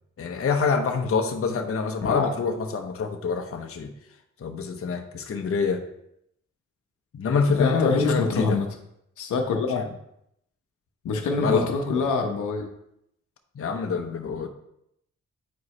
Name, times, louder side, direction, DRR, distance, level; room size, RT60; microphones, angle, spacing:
voice 1, 0.2-3.9 4.4-5.8 7.1-8.6 9.8-9.9 11.4-12.1 13.5-14.5, left 5 dB, 50° left, 4 dB, 0.9 m, -26 dB
voice 2, 7.5-8.7 9.2-9.8 11.0-12.7, left 4 dB, 80° left, 3 dB, 1.0 m, -25 dB
8.2 x 4.7 x 3.2 m, 0.77 s
cardioid pair, 70°, 30 cm